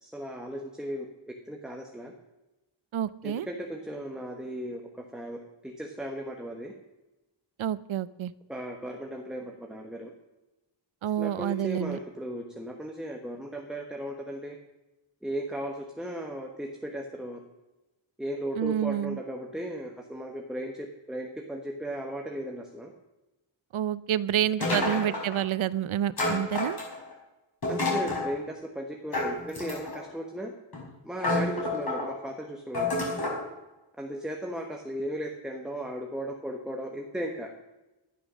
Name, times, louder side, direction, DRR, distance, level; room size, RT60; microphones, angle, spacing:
voice 1, 0.0-2.1 3.2-6.7 8.5-10.1 11.2-14.6 15.2-17.4 18.2-22.9 24.7-24.9 27.7-30.5 31.0-32.9 34.0-37.5, right 1 dB, ahead, 2 dB, 1.1 m, -36 dB
voice 2, 2.9-3.5 7.6-8.3 11.0-12.0 18.6-19.2 23.7-26.8, right 10 dB, 85° right, 18 dB, 0.7 m, -28 dB
sound 1, 24.6-25.4 26.2-27.1 27.6-28.3 29.1-30.1 30.7-30.8 31.2-32.1 32.7-33.4, left 2 dB, 50° left, 4.8 m, -29 dB
12.5 x 11.0 x 6.3 m, 1.0 s
wide cardioid pair, 145°, 47 cm